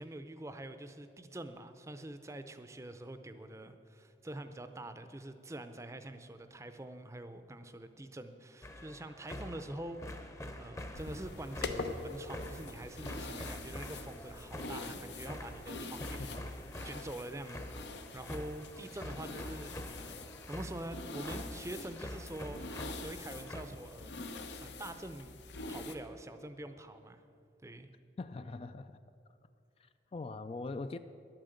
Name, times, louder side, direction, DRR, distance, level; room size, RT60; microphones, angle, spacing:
voice 1, 0.0-16.3 16.8-20.2 20.5-25.4 25.7-27.2 27.6-27.9, right 1 dB, 15° right, 10 dB, 0.5 m, -45 dB
sound 1, 8.6-23.6, left 1 dB, 15° left, 0.7 m, -46 dB
sound 2, 10.9-26.0, left 3 dB, 90° left, 0.9 m, -44 dB
voice 2, 16.0-16.5 28.2-29.0 29.8-31.0, left 3 dB, 35° left, 11 dB, 0.3 m, -42 dB
11.0 x 8.9 x 7.8 m, 2.5 s
head